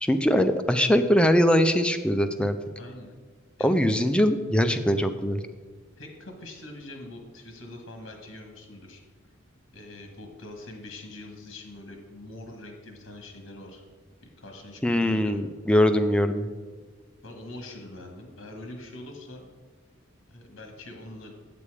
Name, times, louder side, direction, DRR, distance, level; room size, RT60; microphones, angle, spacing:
voice 1, 0.0-2.6 3.6-5.4 14.8-16.5, equal, 5° left, 8 dB, 0.4 m, -22 dB
voice 2, 2.8-3.2 3.6-3.7 6.0-9.0 9.7-13.8 14.4-15.4 17.2-19.4 20.3-21.3, left 1 dB, 65° left, 3 dB, 1.4 m, -43 dB
8.4 x 6.9 x 4.9 m, 1.4 s
head